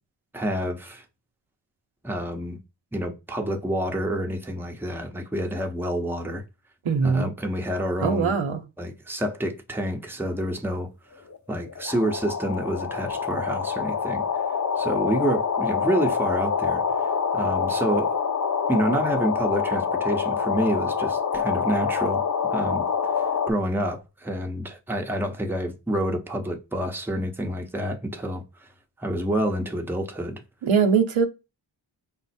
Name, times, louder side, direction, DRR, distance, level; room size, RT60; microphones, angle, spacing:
voice 1, 0.3-1.0 2.0-2.6 2.9-6.4 7.0-8.3 8.8-10.9 11.5-14.2 14.8-16.8 17.3-18.1 18.7-22.2 22.5-22.8 23.5-28.4 29.0-30.4, right 1 dB, 5° right, 0.7 m, -28 dB
voice 2, 6.8-7.3 8.0-8.6 30.6-31.3, right 5 dB, 90° right, 0.8 m, -21 dB
sound 1, 11.3-11.4 11.7-23.5, left 6 dB, 40° left, 0.6 m, -26 dB
5.2 x 2.0 x 4.1 m
cardioid pair, 55°, 46 cm